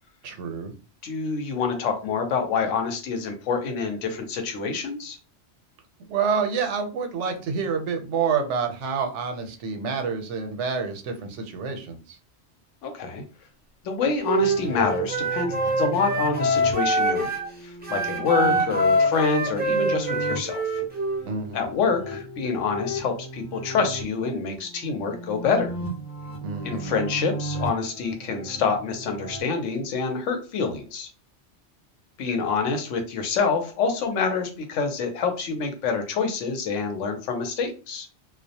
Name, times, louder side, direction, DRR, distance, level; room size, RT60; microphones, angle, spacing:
voice 1, 0.2-0.7 6.1-12.2 21.3-21.7 26.4-26.9, right 6 dB, 80° right, 5 dB, 0.9 m, -28 dB
voice 2, 1.0-5.2 12.8-13.2 13.8-17.3 17.6-20.6 21.5-25.7 26.6-31.1 32.2-38.1, left 5 dB, 85° left, 4 dB, 1.0 m, -26 dB
Wind instrument woodwind instrument, 14.2-17.5 17.8-21.2, right 1 dB, 15° right, 0.3 m, -24 dB
sound 1, 14.4-29.4, equal, 60° left, 0.7 m, -36 dB
2.3 x 2.0 x 2.7 m, 0.34 s
omnidirectional pair, 1.2 m